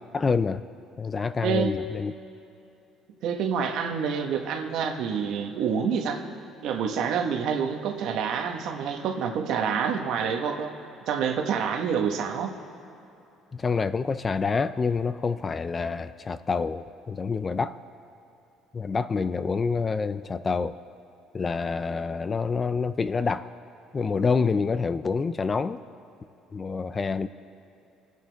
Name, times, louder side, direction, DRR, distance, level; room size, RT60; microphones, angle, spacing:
voice 1, 0.1-0.6 1.0-2.1 13.5-17.8 18.7-20.7 21.3-23.5 23.9-25.8 26.5-27.3, left 5 dB, 25° left, 13 dB, 0.4 m, -27 dB
voice 2, 1.4-1.7 3.2-6.2 6.6-10.7 11.1-12.5, right 7 dB, 65° right, 4 dB, 1.3 m, -27 dB
27.5 x 9.5 x 3.5 m, 2.9 s
cardioid pair, 125°, 0 cm